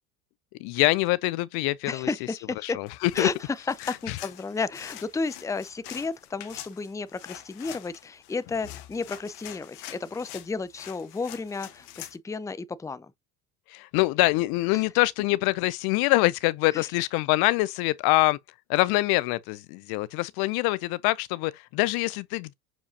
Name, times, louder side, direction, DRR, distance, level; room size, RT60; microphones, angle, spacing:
voice 1, 0.6-2.1 2.6-3.3 4.1-4.2 13.7-18.4 18.7-22.5, left 21 dB, 55° left, 0.5 m, -24 dB
voice 2, 1.9-2.8 3.1-13.1 14.7-14.8 16.7-16.8, left 4 dB, 5° left, 0.6 m, -32 dB
sound 1, 2.9-12.2, left 13 dB, 70° left, 1.3 m, -45 dB
7.3 x 4.8 x 2.7 m
hypercardioid pair, 75°, 47 cm